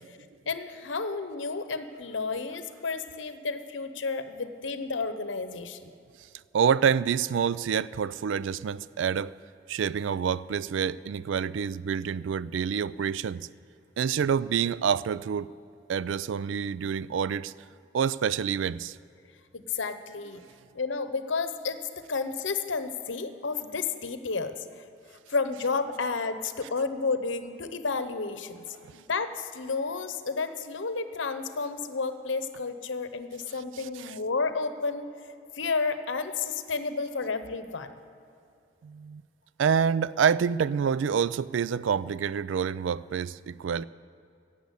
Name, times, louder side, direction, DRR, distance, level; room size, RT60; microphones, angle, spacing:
voice 1, 0.5-5.9 19.5-20.4 20.7-24.8 25.3-28.6 28.9-35.1 35.5-37.9, left 4 dB, 85° left, 10 dB, 0.9 m, -31 dB
voice 2, 6.5-9.3 9.7-13.5 14.0-15.5 15.9-17.5 17.9-19.0 33.8-34.1 38.8-39.2 39.6-43.8, right 7 dB, 85° right, 19 dB, 0.3 m, -27 dB
15.5 x 7.1 x 8.3 m, 2.6 s
head